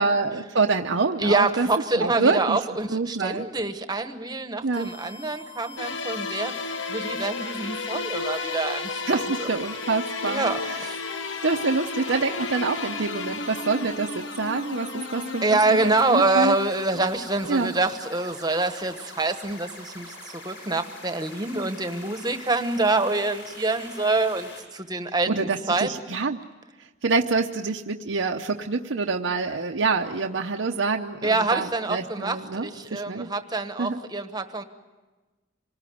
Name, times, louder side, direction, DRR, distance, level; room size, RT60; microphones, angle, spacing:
voice 1, 0.0-1.7 2.0-2.6 2.9-3.5 4.6-4.9 9.1-10.9 11.4-15.6 15.8-16.6 17.5-17.7 25.3-26.4 27.0-33.3 33.8-34.0, right 4 dB, 80° right, 2 dB, 0.8 m, -26 dB
voice 2, 1.2-6.5 6.9-9.5 10.2-11.0 15.4-25.9 31.2-34.6, right 2 dB, 20° right, 9 dB, 1.2 m, -26 dB
sound 1, 4.7-24.6, left 1 dB, 65° left, 6.7 m, -43 dB
sound 2, 5.8-17.6, left 4 dB, 80° left, 1.0 m, -33 dB
26.5 x 19.5 x 9.4 m, 1.2 s
head